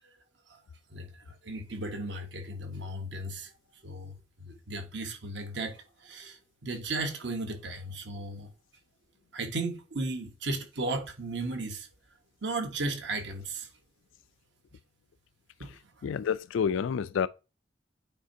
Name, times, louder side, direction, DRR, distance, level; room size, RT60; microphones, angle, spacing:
voice 1, 0.9-3.5 3.8-8.5 9.3-11.9 12.4-13.7 15.6-15.7, right 2 dB, 65° right, 1.1 m, -35 dB
voice 2, 16.0-17.3, left 7 dB, 85° left, 0.3 m, -28 dB
8.8 x 4.3 x 2.7 m
head